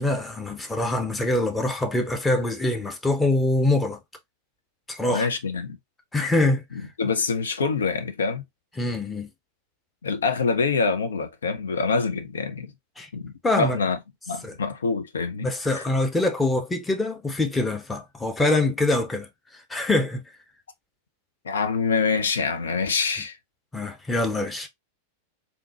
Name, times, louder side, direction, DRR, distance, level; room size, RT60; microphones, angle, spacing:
voice 1, 0.0-4.0 4.9-5.3 6.1-6.6 8.8-9.3 13.0-13.1 13.4-13.8 14.4-14.6 15.4-20.2 23.7-24.7, left 2 dB, 10° left, 0.8 m, -24 dB
voice 2, 5.1-5.8 7.0-8.4 10.0-12.7 13.1-14.0 14.3-15.8 21.4-23.4, left 4 dB, 70° left, 0.6 m, -25 dB
3.7 x 2.8 x 2.9 m
figure-of-eight pair, 90°, 0 cm